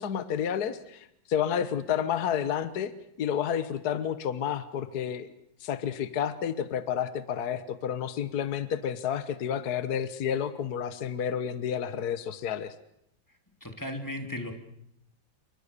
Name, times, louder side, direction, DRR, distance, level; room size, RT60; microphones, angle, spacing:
voice 1, 0.0-2.9 3.2-5.3 5.6-12.7, left 8 dB, 55° left, 12 dB, 1.6 m, -30 dB
voice 2, 13.6-14.5, left 1 dB, 10° left, 4 dB, 3.0 m, -35 dB
28.0 x 24.0 x 6.8 m, 0.77 s
omnidirectional pair, 2.1 m